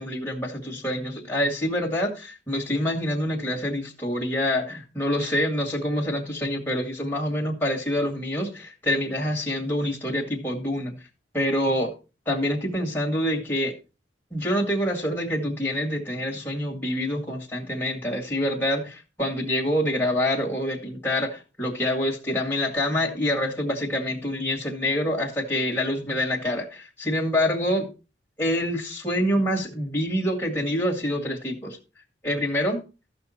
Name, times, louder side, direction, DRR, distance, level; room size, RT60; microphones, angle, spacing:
voice 1, 0.0-10.9 11.3-11.9 12.3-13.7 14.3-27.9 28.4-31.8 32.2-32.8, left 1 dB, 10° left, -1 dB, 2.2 m, -26 dB
14.0 x 5.9 x 4.4 m, 0.31 s
head